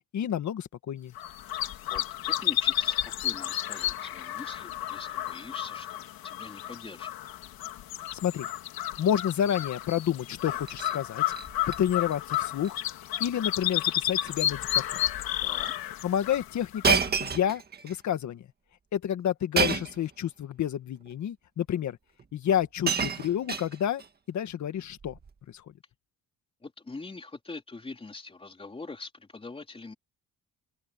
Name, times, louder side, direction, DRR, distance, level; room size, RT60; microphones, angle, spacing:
voice 1, 0.1-1.1 8.2-8.5 9.0-11.2 11.7-12.8 13.2-15.0 16.0-18.5 18.9-22.0 22.3-24.0 24.3-25.2 25.5-25.6, left 10 dB, 55° left, 1.7 m, -29 dB
sound 1, 1.1-17.2, left 12 dB, 80° left, 2.3 m, -32 dB
voice 2, 1.5-7.1 15.4-15.7 26.6-29.9, left 3 dB, 15° left, 3.3 m, -44 dB
Shatter, 10.5-11.0 11.3-11.8 12.1-12.4 12.6-12.7 13.6-13.8 14.2-14.4 15.2-15.3 16.8-17.9 19.6-20.0 21.1-21.2 22.2-22.3 22.6-24.1 25.0-25.3, right 6 dB, 25° right, 1.8 m, -29 dB
cardioid pair, 150°, 36 cm